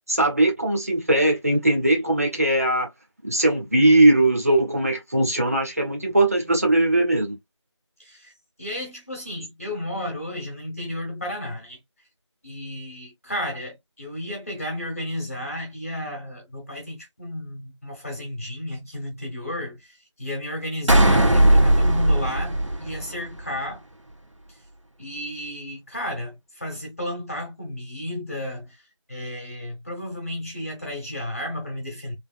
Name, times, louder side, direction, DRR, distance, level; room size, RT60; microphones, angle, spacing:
voice 1, 0.1-2.9 3.2-7.4, right 1 dB, 30° right, 1.0 m, -20 dB
voice 2, 8.0-8.3 8.6-11.8 12.4-23.8 25.0-28.8 29.1-32.1, left 1 dB, 30° left, 1.3 m, -33 dB
sound 1, 20.9-23.4, right 1 dB, 80° right, 1.1 m, -18 dB
3.4 x 2.7 x 2.4 m
figure-of-eight pair, 175°, 16 cm